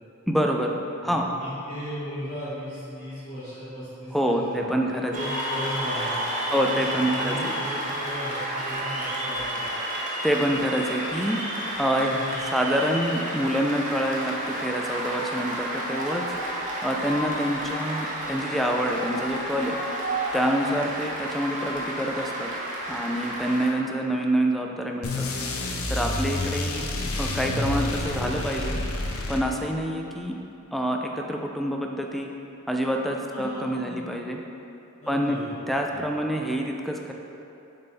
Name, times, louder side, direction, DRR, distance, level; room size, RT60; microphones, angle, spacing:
voice 1, 0.3-0.8 1.0-1.3 4.1-5.3 6.5-7.5 10.2-11.4 11.8-12.1 12.4-16.2 16.8-19.8 20.3-22.5 22.9-25.3 25.9-26.9 27.2-28.8 29.3-30.4 30.7-32.3 32.7-34.4 35.1-35.4 35.7-37.1, equal, ahead, 1 dB, 0.3 m, -26 dB
voice 2, 1.0-9.6 12.0-12.3 33.3-34.1 35.0-35.5 35.9-36.0, equal, 35° left, -11 dB, 1.1 m, -36 dB
Cheering / Applause, 5.1-23.7, right 1 dB, 35° right, 0.8 m, -31 dB
sound 1, 25.0-29.8, left 2 dB, 75° left, 0.6 m, -29 dB
6.6 x 4.2 x 3.4 m, 2.8 s
head